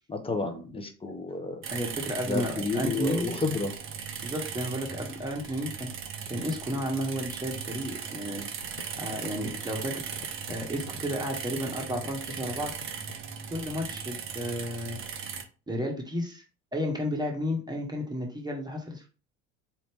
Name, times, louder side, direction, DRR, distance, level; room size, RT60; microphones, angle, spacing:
voice 1, 0.1-1.6 2.3-3.7, left 3 dB, 15° left, 0.9 m, -31 dB
sound 1, 1.6-15.4, right 6 dB, 30° right, 0.7 m, -38 dB
voice 2, 1.7-3.3 4.2-5.9 6.3-8.7 9.0-10.0 10.5-12.7 13.5-15.0 15.7-16.4 16.7-19.1, equal, 10° right, 1.1 m, -32 dB
sound 2, 8.6-13.3, left 9 dB, 45° left, 0.7 m, -46 dB
4.1 x 2.8 x 3.4 m
figure-of-eight pair, 65°, 43 cm